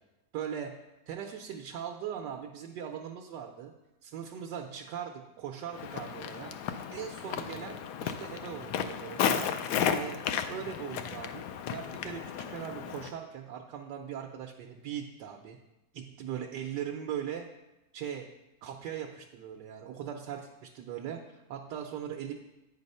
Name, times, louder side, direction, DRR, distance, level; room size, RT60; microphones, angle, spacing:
voice 1, 0.3-3.7 4.0-6.5 6.9-9.5 9.9-10.2 10.5-11.5 11.7-15.6 15.9-17.5 17.9-18.3 18.6-22.3, right 9 dB, 80° right, 2 dB, 1.3 m, -40 dB
Walk footsteps, 5.7-13.1, left 8 dB, 75° left, 1.1 m, -34 dB
9.1 x 4.7 x 5.4 m, 0.96 s
omnidirectional pair, 1.9 m